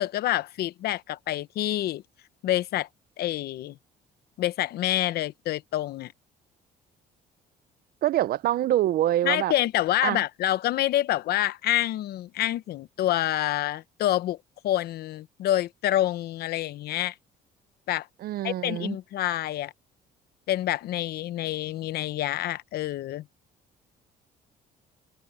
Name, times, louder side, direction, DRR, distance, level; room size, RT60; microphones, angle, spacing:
voice 1, 0.0-2.0 2.4-2.9 3.2-3.8 4.4-6.1 9.2-14.4 14.6-17.1 17.9-18.1 18.4-19.7 20.5-23.2, left 13 dB, 70° left, 0.9 m, -27 dB
voice 2, 8.0-9.5 10.0-10.2 18.2-19.0, right 13 dB, 65° right, 0.7 m, -25 dB
cardioid pair, 110°, 17 cm